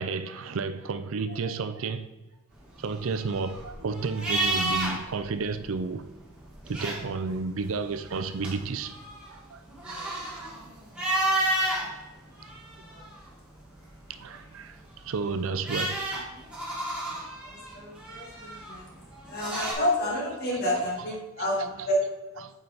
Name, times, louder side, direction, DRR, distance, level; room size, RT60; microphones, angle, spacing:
voice 1, 0.0-2.1 2.8-6.0 6.7-9.0 9.3-9.6 9.9-10.0 10.4-10.5 14.1-14.8 15.0-16.0 20.5-21.9 22.4-22.5, right 4 dB, 60° right, 0.4 m, -32 dB
sound 1, 2.7-5.2 5.5-5.6 6.5-7.4 7.9-11.9 12.4-13.4 14.9-19.7, right 1 dB, 5° right, 1.7 m, -31 dB
voice 2, 9.8-10.2 12.8-13.0 14.3-14.4 17.4-18.9 19.3-22.0, left 1 dB, 45° left, 1.9 m, -30 dB
8.7 x 5.0 x 4.0 m
head